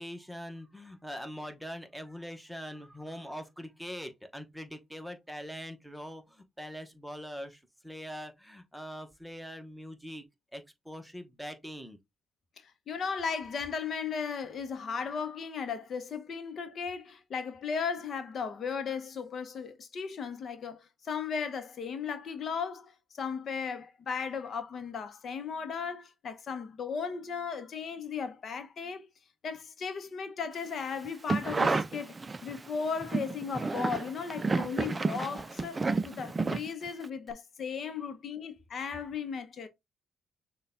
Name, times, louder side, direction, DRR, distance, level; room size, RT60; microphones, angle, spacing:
voice 1, 0.0-10.2 10.5-12.0, equal, ahead, 1.0 m, -43 dB
voice 2, 12.6-29.1 29.4-39.7, left 6 dB, 55° left, 0.7 m, -36 dB
sound 1, 31.0-32.6 33.0-37.1 37.3-37.4, right 3 dB, 25° right, 0.4 m, -31 dB
6.4 x 2.3 x 3.6 m
cardioid pair, 90°, 0 cm